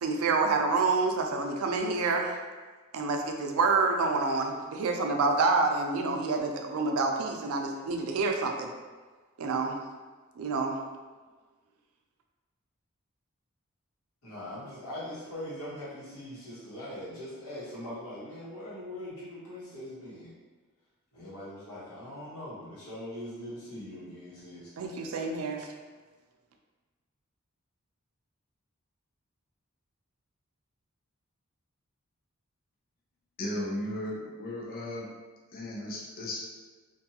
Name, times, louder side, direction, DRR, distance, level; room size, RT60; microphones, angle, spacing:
voice 1, 0.0-2.4 2.9-8.7 9.4-9.7 10.4-10.7 24.8-25.7, right 3 dB, 80° right, 2 dB, 0.4 m, -27 dB
voice 2, 14.2-20.3 21.1-24.7, left 1 dB, 90° left, -9 dB, 1.2 m, -41 dB
voice 3, 33.4-35.1 35.5-36.4, left 1 dB, 40° left, -3 dB, 0.4 m, -35 dB
2.6 x 2.3 x 2.8 m, 1.3 s
head